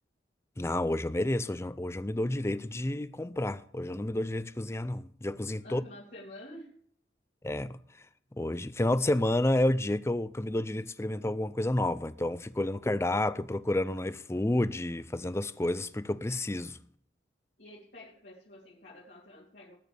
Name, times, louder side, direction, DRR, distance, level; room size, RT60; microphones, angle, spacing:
voice 1, 0.6-5.8 7.4-7.8 8.4-16.8, left 1 dB, 15° left, 0.5 m, -30 dB
voice 2, 5.6-6.8 17.6-19.7, left 1 dB, 65° left, 2.9 m, -49 dB
19.5 x 9.0 x 3.4 m
head